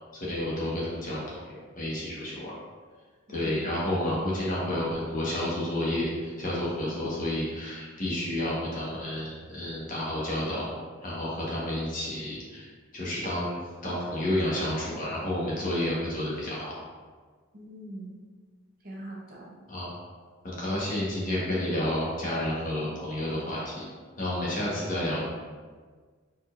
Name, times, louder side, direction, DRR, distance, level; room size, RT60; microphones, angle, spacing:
voice 1, 0.3-2.5 3.3-10.6 11.0-12.7 12.9-13.6 13.8-16.7 19.7-19.9 20.4-23.8 24.2-25.2, left 1 dB, 40° left, -7 dB, 1.3 m, -30 dB
voice 2, 3.3-3.7 17.5-18.2 18.8-19.5, right 1 dB, 45° right, -5 dB, 0.9 m, -42 dB
4.4 x 4.1 x 2.5 m, 1.5 s
head